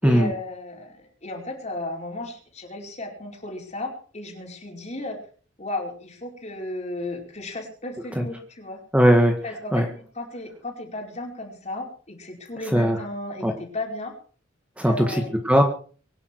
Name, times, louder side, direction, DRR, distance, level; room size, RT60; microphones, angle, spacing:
voice 1, 0.0-5.2 5.6-8.8 9.4-14.1 14.8-15.3, left 2 dB, 35° left, 1 dB, 4.9 m, -34 dB
voice 2, 8.9-9.4 9.7-9.8 12.7-13.0 13.4-13.5 14.8-15.6, equal, 5° right, 4 dB, 1.8 m, -19 dB
24.0 x 11.0 x 4.7 m, 0.42 s
head